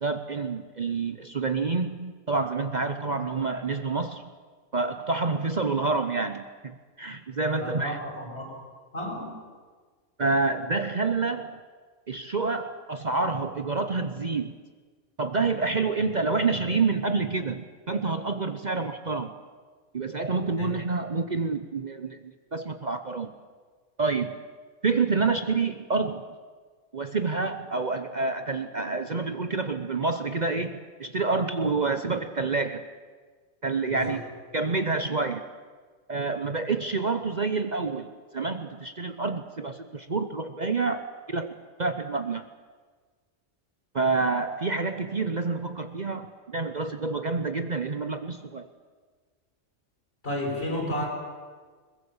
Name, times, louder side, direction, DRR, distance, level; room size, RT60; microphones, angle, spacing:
voice 1, 0.0-4.3 4.7-8.0 10.2-11.6 12.1-14.5 15.2-19.3 19.9-23.3 24.0-24.4 24.8-26.2 26.9-32.8 33.6-34.2 34.5-35.4 36.1-38.1 38.3-41.5 41.8-42.4 43.9-48.7, right 4 dB, 40° right, 9 dB, 1.0 m, -28 dB
voice 2, 7.6-8.6 8.9-9.4 20.6-20.7 33.9-34.2 50.2-51.1, left 1 dB, 55° left, 0 dB, 6.3 m, -32 dB
22.0 x 21.0 x 7.3 m, 1.5 s
omnidirectional pair, 1.3 m